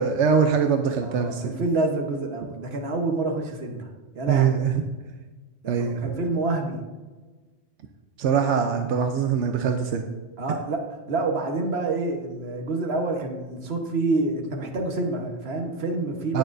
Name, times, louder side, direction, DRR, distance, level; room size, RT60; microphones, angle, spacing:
voice 1, 0.0-1.6 4.3-4.7 5.7-6.0 8.2-10.1 16.3-16.4, right 6 dB, 90° right, 5 dB, 1.0 m, -22 dB
voice 2, 1.0-3.9 4.1-4.5 5.6-6.8 10.4-10.8 11.1-16.4, right 2 dB, 65° right, 2 dB, 1.5 m, -27 dB
18.0 x 6.3 x 2.6 m, 1.3 s
omnidirectional pair, 1.1 m